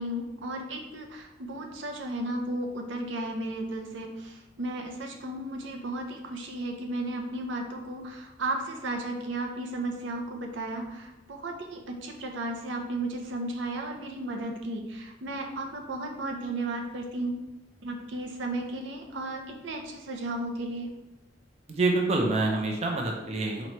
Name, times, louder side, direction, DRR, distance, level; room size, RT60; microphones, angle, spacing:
voice 1, 0.0-17.4 17.8-20.9, right 1 dB, 80° right, 2 dB, 0.6 m, -34 dB
voice 2, 21.7-23.7, right 2 dB, 35° right, 0 dB, 0.5 m, -26 dB
4.4 x 3.0 x 3.0 m, 0.95 s
head